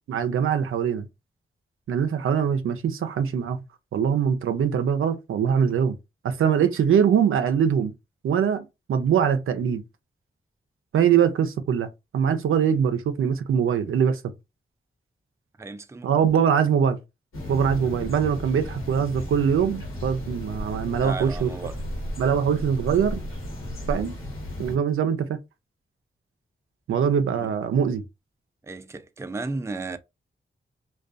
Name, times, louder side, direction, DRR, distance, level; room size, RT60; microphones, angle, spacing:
voice 1, 0.1-1.1 1.9-3.6 3.9-6.0 6.2-7.9 8.2-9.8 10.9-11.9 12.1-14.3 16.0-17.0 17.5-21.5 22.2-23.2 23.9-24.1 24.6-25.4 26.9-28.0, right 7 dB, 85° right, 0.4 m, -22 dB
voice 2, 15.6-16.2 17.8-17.9 21.0-21.8 27.4-27.5 28.6-30.0, right 3 dB, 15° right, 0.3 m, -34 dB
sound 1, 17.3-24.8, equal, 80° left, 1.1 m, -34 dB
2.5 x 2.2 x 2.3 m
cardioid pair, 40°, 21 cm